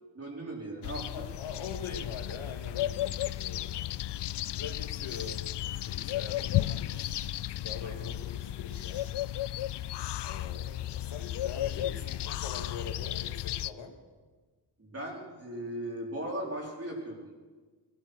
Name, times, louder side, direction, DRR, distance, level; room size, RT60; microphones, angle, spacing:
voice 1, 0.1-1.3 7.8-7.9 14.8-17.3, right 1 dB, 30° right, 0 dB, 4.2 m, -38 dB
sound 1, 0.8-13.7, left 13 dB, 60° left, 0.5 m, -34 dB
voice 2, 1.1-4.1 4.5-5.4 5.9-6.9 7.6-9.1 10.2-13.9, left 5 dB, 85° left, 4 dB, 2.2 m, -43 dB
sound 2, 4.3-4.4 5.0-5.4 6.9-7.4 8.7-9.4, left 5 dB, 40° left, 1.5 m, -52 dB
17.5 x 12.5 x 6.3 m, 1.4 s
cardioid pair, 90°, 46 cm